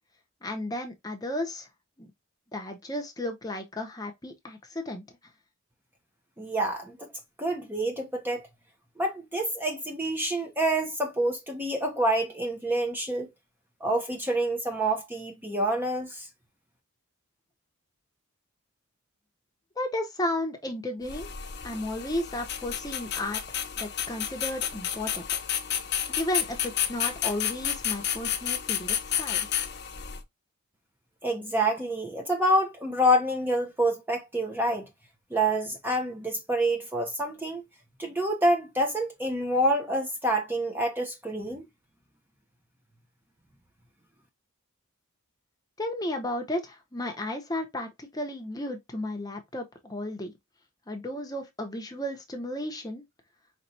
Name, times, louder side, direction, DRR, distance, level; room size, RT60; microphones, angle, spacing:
voice 1, 0.4-1.7 2.0-2.1 2.5-5.0 19.8-21.3 21.6-23.4 23.8-25.2 26.1-29.5 45.8-50.3 50.9-53.0, left 1 dB, 15° left, 0.9 m, -33 dB
voice 2, 6.4-7.1 7.4-8.5 9.0-13.3 13.8-16.3 31.2-34.9 35.3-37.6 38.0-41.6, right 1 dB, 10° right, 0.8 m, -27 dB
sound 1, 21.1-30.2, left 9 dB, 50° left, 0.8 m, -31 dB
5.1 x 3.3 x 2.8 m
head